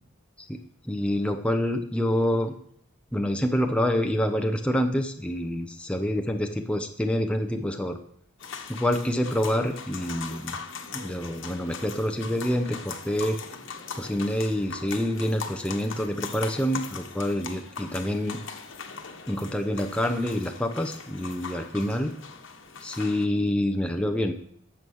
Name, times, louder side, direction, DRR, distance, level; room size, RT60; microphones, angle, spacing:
voice 1, 0.8-2.5 3.1-8.0 8.7-10.6 10.9-13.4 13.9-18.4 19.3-22.1 22.8-24.3, equal, 5° left, 5 dB, 0.7 m, -27 dB
sound 1, 8.4-23.3, left 5 dB, 60° left, 1.2 m, -40 dB
9.5 x 7.2 x 6.3 m, 0.67 s
head